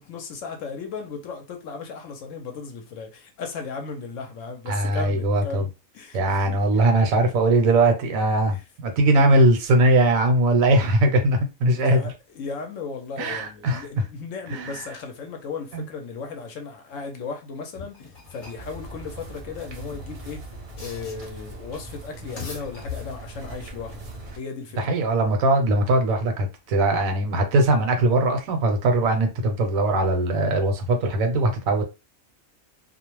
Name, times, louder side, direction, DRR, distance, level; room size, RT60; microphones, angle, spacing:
voice 1, 0.0-6.8 8.5-8.6 11.8-20.4 20.8-25.0, left 4 dB, 70° left, 0.9 m, -36 dB
voice 2, 4.7-5.7 6.1-12.1 13.2-13.9 14.5-14.8 15.7-15.8 24.8-31.8, right 2 dB, 75° right, 1.0 m, -20 dB
sound 1, 17.7-18.7 19.6-21.5 22.1-23.4, left 6 dB, 40° left, 0.9 m, -40 dB
sound 2, 18.5-24.4, right 2 dB, 55° right, 0.4 m, -40 dB
2.4 x 2.1 x 3.0 m
omnidirectional pair, 1.5 m